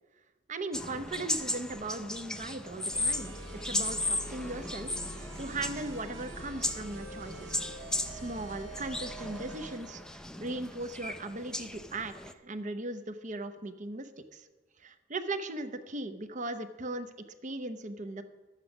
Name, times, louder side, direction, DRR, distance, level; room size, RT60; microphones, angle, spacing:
voice 1, 0.5-3.3 3.6-7.6 8.1-14.5 14.8-18.2, right 2 dB, 40° right, 10 dB, 0.7 m, -38 dB
sound 1, 0.7-12.3, left 1 dB, 5° left, 0.4 m, -36 dB
sound 2, 2.9-9.8, right 1 dB, 65° right, 1.9 m, -44 dB
11.5 x 8.2 x 6.0 m, 1.3 s
head